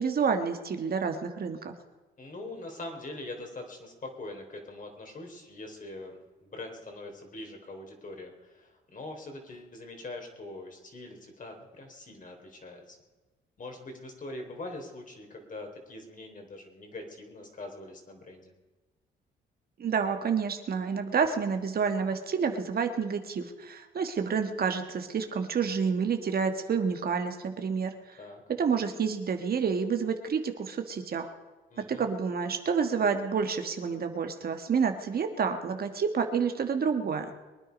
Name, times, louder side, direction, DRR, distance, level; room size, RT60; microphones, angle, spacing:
voice 1, 0.0-1.7 19.8-27.9 28.5-31.3 31.9-37.3, right 6 dB, 50° right, 6 dB, 1.6 m, -29 dB
voice 2, 2.2-13.0 13.6-18.5 28.2-28.4 31.7-32.1, left 2 dB, 40° left, 3 dB, 3.9 m, -43 dB
23.0 x 9.9 x 5.3 m, 1.2 s
cardioid pair, 90°, 20 cm